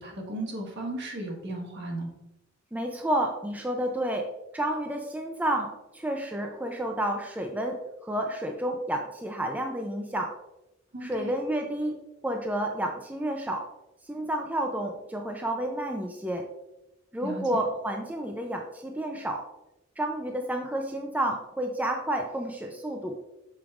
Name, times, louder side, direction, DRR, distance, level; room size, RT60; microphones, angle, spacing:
voice 1, 0.0-2.1 10.9-11.3 17.2-17.6, right 1 dB, 60° right, 0 dB, 1.5 m, -35 dB
voice 2, 2.7-4.3 4.5-10.3 11.0-12.0 12.2-13.6 14.1-16.5 17.1-19.4 20.0-23.2, right 1 dB, 10° right, 2 dB, 0.4 m, -30 dB
7.9 x 5.2 x 2.4 m, 0.96 s
head